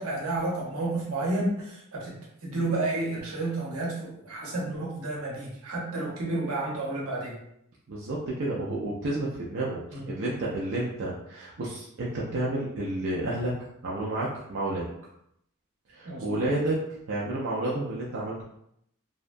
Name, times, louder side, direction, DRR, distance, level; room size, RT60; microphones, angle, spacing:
voice 1, 0.0-2.1 2.4-7.4 9.9-10.2 16.0-16.5, right 2 dB, 85° right, -3 dB, 0.9 m, -31 dB
voice 2, 7.9-13.5 13.8-14.9 15.9-18.4, right 2 dB, 60° right, -5 dB, 0.4 m, -30 dB
2.7 x 2.2 x 2.5 m, 0.75 s
head